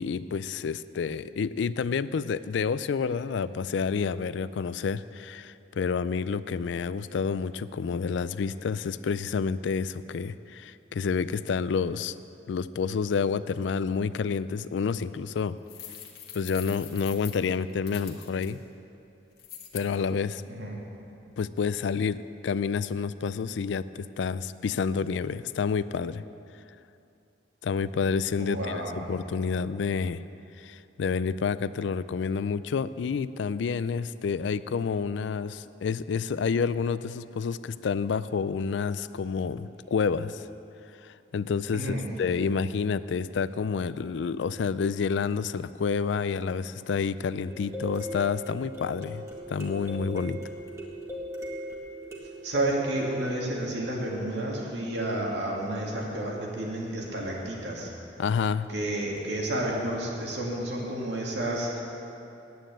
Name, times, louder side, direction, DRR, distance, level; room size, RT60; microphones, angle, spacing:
voice 1, 0.0-12.1 12.5-15.6 16.3-18.6 19.7-20.4 21.4-26.2 27.6-30.2 30.6-40.4 41.0-50.4 58.2-58.7, left 5 dB, 75° left, 15 dB, 0.4 m, -29 dB
sound 1, 15.7-18.5 19.4-19.9, left 10 dB, 55° left, 1.5 m, -43 dB
voice 2, 28.4-28.9 41.7-42.0 52.4-57.9 58.7-61.8, right 1 dB, 65° right, -2 dB, 2.2 m, -31 dB
sound 2, 47.5-54.4 58.6-58.7 59.2-59.3, equal, 15° right, 1.7 m, -39 dB
9.4 x 9.1 x 8.8 m, 2.8 s
head